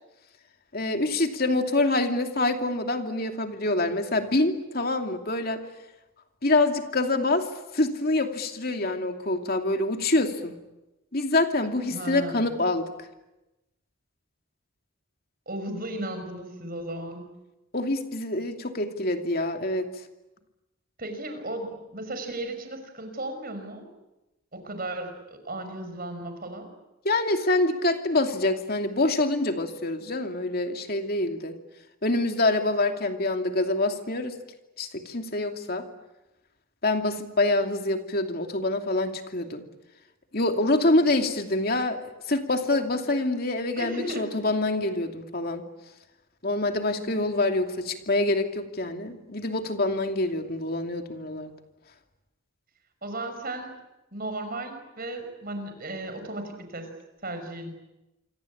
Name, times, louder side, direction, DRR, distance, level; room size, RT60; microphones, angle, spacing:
voice 1, 0.7-5.6 6.4-7.5 7.7-10.5 11.1-12.9 17.7-19.9 27.0-31.6 32.0-34.4 34.8-35.9 36.8-39.6 40.3-45.6 46.4-51.5, left 2 dB, 45° left, 5 dB, 2.7 m, -26 dB
voice 2, 11.9-12.5 15.5-17.3 21.0-23.9 24.5-26.7 43.8-44.3 53.0-53.8 54.1-56.9 57.2-57.7, right 1 dB, 45° right, 7 dB, 5.8 m, -35 dB
27.5 x 24.5 x 8.6 m, 0.99 s
head